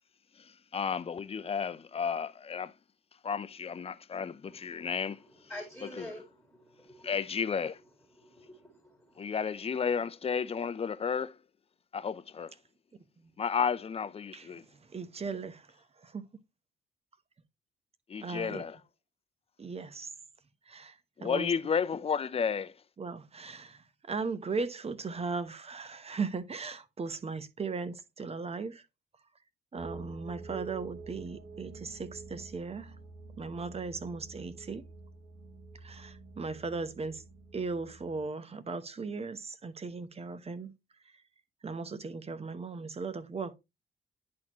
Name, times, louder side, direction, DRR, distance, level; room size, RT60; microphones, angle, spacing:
voice 1, 0.4-2.7 3.2-5.2 6.0-6.1 7.0-7.8 9.2-11.4 11.9-12.5 13.4-14.6 18.1-18.8 21.2-22.8, left 6 dB, 30° left, 0.6 m, -32 dB
voice 2, 4.5-5.1 5.5-6.3 7.0-7.1 8.2-9.2, left 1 dB, 5° left, 2.0 m, -47 dB
voice 3, 14.9-15.7 16.0-16.2 18.2-18.6 19.6-20.1 20.7-21.5 23.0-28.8 29.7-32.9 33.4-34.8 35.8-37.2 37.5-40.7 41.6-43.5, right 4 dB, 30° right, 1.0 m, -37 dB
sound 1, 29.8-38.2, right 4 dB, 60° right, 1.7 m, -48 dB
10.5 x 4.2 x 3.0 m
cardioid pair, 90°, 20 cm